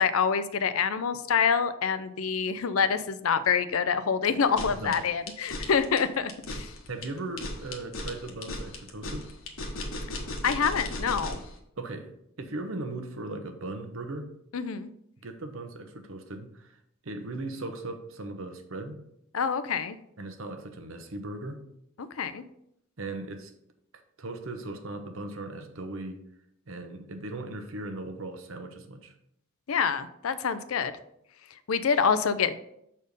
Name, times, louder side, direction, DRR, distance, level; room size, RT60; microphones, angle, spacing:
voice 1, 0.0-6.7 10.4-11.4 14.5-14.9 19.3-20.0 22.2-22.4 29.7-30.9 31.7-32.5, left 6 dB, 85° left, 13 dB, 0.5 m, -26 dB
sound 1, 4.4-11.5, left 1 dB, 70° left, 1.2 m, -36 dB
voice 2, 4.7-5.0 6.9-9.3 11.8-12.1 12.4-14.3 15.2-19.0 20.2-21.6 23.0-23.5 23.9-26.2 26.7-29.1, right 2 dB, 70° right, 7 dB, 0.9 m, -38 dB
6.6 x 4.3 x 5.3 m, 0.76 s
head